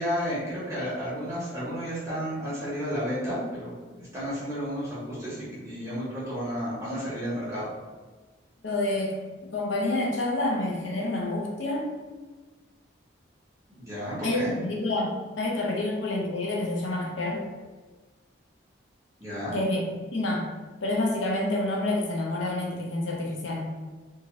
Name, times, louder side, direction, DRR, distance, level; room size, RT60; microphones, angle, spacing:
voice 1, 0.0-7.7 13.7-14.5 19.2-19.5, equal, 15° right, -9 dB, 1.0 m, -32 dB
voice 2, 8.6-9.2 9.5-12.0 14.2-17.5 19.5-20.5 20.8-23.7, left 2 dB, 75° left, -1 dB, 0.6 m, -28 dB
2.7 x 2.4 x 3.0 m, 1.3 s
head